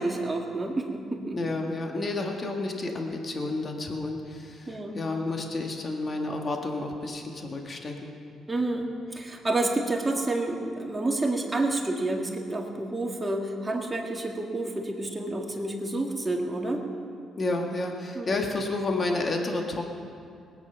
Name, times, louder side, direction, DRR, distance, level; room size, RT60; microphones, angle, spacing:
voice 1, 0.0-1.4 4.7-5.0 8.5-16.8 18.2-18.4, right 2 dB, 20° right, 1 dB, 2.0 m, -29 dB
voice 2, 1.3-8.1 17.4-19.8, left 2 dB, 35° left, 2 dB, 1.7 m, -30 dB
20.0 x 9.3 x 5.7 m, 2.4 s
cardioid pair, 90°, 0 cm